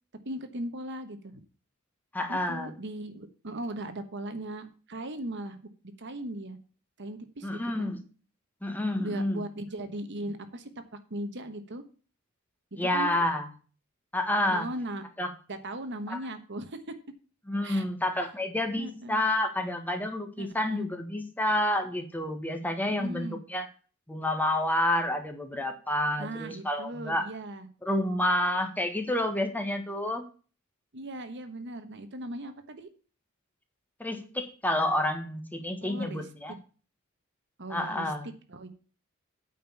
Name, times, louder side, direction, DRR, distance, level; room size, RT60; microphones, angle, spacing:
voice 1, 0.2-1.4 2.3-5.6 6.0-6.6 7.0-7.9 9.0-10.7 11.1-11.8 12.7-13.2 14.5-15.0 15.5-16.8 17.6-17.8 18.8-19.3 20.4-20.9 22.9-23.4 26.2-27.7 30.9-32.9 35.8-36.3 37.6-38.1 38.5-38.7, right 1 dB, 60° right, 9 dB, 1.3 m, -38 dB
voice 2, 2.1-2.7 7.4-8.0 8.6-9.4 12.7-13.5 14.1-14.7 15.2-15.3 16.1-16.2 17.5-23.7 24.1-27.3 27.8-30.2 34.0-36.6 37.7-38.3, left 1 dB, 10° left, 5 dB, 1.6 m, -29 dB
9.0 x 5.3 x 6.9 m, 0.37 s
head